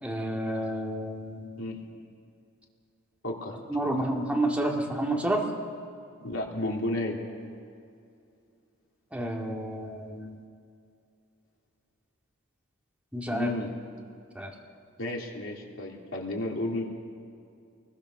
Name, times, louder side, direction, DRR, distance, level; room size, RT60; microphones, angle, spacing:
voice 1, 0.0-1.6 3.7-5.4 9.1-10.4 13.1-13.5 14.4-14.5, right 1 dB, 5° right, -1 dB, 2.3 m, -30 dB
voice 2, 3.2-3.6 4.0-4.1 6.2-7.2 13.3-13.7 15.0-16.8, left 1 dB, 70° left, -1 dB, 3.2 m, -32 dB
27.5 x 21.0 x 6.6 m, 2.4 s
head